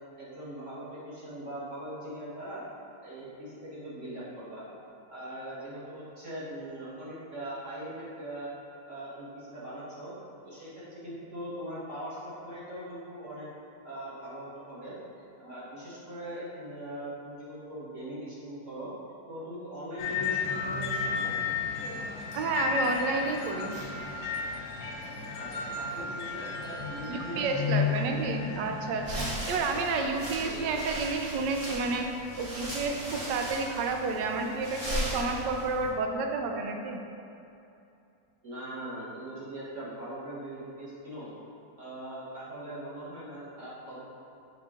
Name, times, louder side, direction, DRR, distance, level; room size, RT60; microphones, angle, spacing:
voice 1, 0.2-2.7 3.0-4.6 5.1-8.5 8.9-10.1 10.4-13.5 13.8-15.0 15.4-18.9 19.3-21.3 25.4-28.2 29.5-30.1 30.4-30.7 38.4-41.3 41.8-44.0, right 1 dB, 40° right, -9 dB, 1.8 m, -41 dB
sound 1, 20.0-29.3, left 5 dB, 65° left, 1.2 m, -33 dB
voice 2, 22.3-23.7 27.1-32.1 32.4-37.0, right 4 dB, 75° right, 3 dB, 1.2 m, -30 dB
sound 2, 29.0-35.9, equal, 25° right, 0.9 m, -37 dB
7.1 x 3.8 x 3.6 m, 2.7 s
omnidirectional pair, 2.0 m